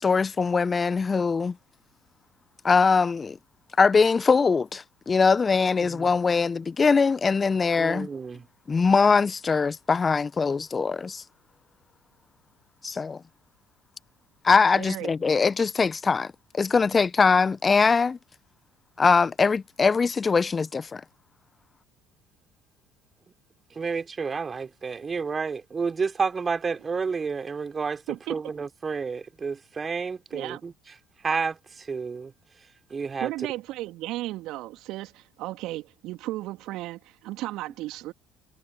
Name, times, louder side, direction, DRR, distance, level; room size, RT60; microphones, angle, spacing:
voice 1, 0.0-1.5 2.6-3.4 3.8-8.1 8.7-11.2 12.8-13.2 14.4-16.3 16.5-18.2 19.0-21.0, left 5 dB, 30° left, 1.0 m, -22 dB
voice 2, 7.8-8.4 23.7-28.0 28.3-30.7 31.2-32.3 32.9-33.3, right 5 dB, 30° right, 5.1 m, -30 dB
voice 3, 14.7-15.1 28.1-28.4 30.3-30.6 33.2-38.1, right 17 dB, 60° right, 2.9 m, -34 dB
figure-of-eight pair, 60°, 0 cm